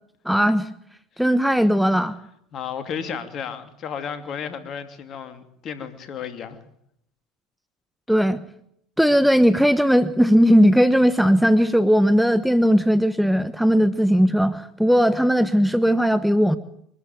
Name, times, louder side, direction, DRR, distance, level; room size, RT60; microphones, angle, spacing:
voice 1, 0.2-0.7 1.2-2.2 8.1-8.4 9.0-16.6, equal, ahead, 12 dB, 1.2 m, -18 dB
voice 2, 2.5-6.6, left 7 dB, 45° left, 9 dB, 2.8 m, -33 dB
24.0 x 13.0 x 9.2 m, 0.73 s
hypercardioid pair, 75°, 0 cm